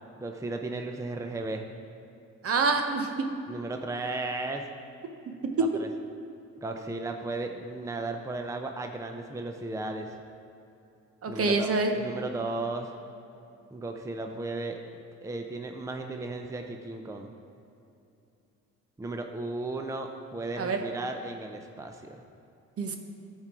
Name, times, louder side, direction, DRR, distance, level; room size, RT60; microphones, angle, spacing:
voice 1, 0.2-1.6 3.5-4.6 5.8-5.9 6.6-10.1 11.3-12.9 13.7-17.3 19.0-22.2, right 2 dB, 10° right, 4 dB, 0.6 m, -35 dB
voice 2, 2.4-3.3 5.6-5.7 11.2-11.9 20.6-20.8 22.8-22.9, right 4 dB, 50° right, 5 dB, 1.0 m, -26 dB
12.5 x 4.5 x 4.8 m, 2.7 s
cardioid pair, 90°, 30 cm